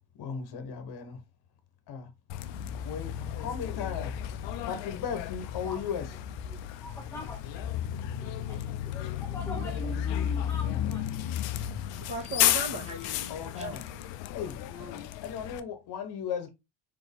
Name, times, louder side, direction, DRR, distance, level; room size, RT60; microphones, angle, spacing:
voice 1, 0.1-1.2 1.9-2.1 2.8-3.1 3.4-4.1 4.7-6.1 13.3-13.8 14.3-14.6 15.2-16.5, left 7 dB, 60° left, 1.1 m, -36 dB
Bus, 2.3-15.6, left 11 dB, 80° left, 0.6 m, -33 dB
voice 2, 6.5-7.7 8.1-11.1, equal, 5° left, 0.6 m, -43 dB
voice 3, 11.9-13.8 14.7-15.1, right 1 dB, 25° right, 1.7 m, -38 dB
4.3 x 3.0 x 3.6 m
cardioid pair, 95°, 44 cm